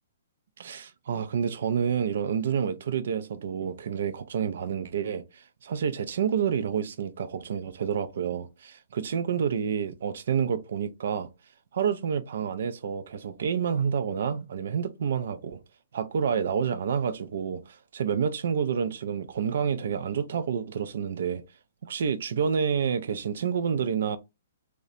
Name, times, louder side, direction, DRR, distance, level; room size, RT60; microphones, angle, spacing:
voice 1, 0.6-11.3 11.7-15.6 15.9-21.4 21.8-24.2, right 7 dB, 55° right, 0.3 m, -29 dB
2.7 x 2.1 x 2.4 m
hypercardioid pair, 180°, 0 cm